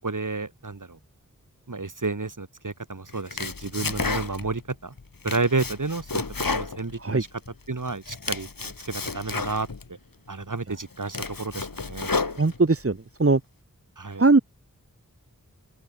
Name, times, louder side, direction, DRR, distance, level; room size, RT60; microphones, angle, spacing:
voice 1, 0.0-1.0 1.7-4.9 5.2-6.2 6.5-7.3 7.7-9.7 10.3-12.1 14.0-14.2, right 3 dB, 65° right, 6.9 m, -31 dB
Domestic sounds home sounds, 3.1-4.6 5.0-7.5 7.9-9.9 10.4-10.5 10.9-12.9, left 4 dB, 85° left, 6.0 m, -31 dB
voice 2, 12.4-13.4 14.2-14.4, right 3 dB, 45° right, 1.8 m, -20 dB
open air
wide cardioid pair, 70°, 33 cm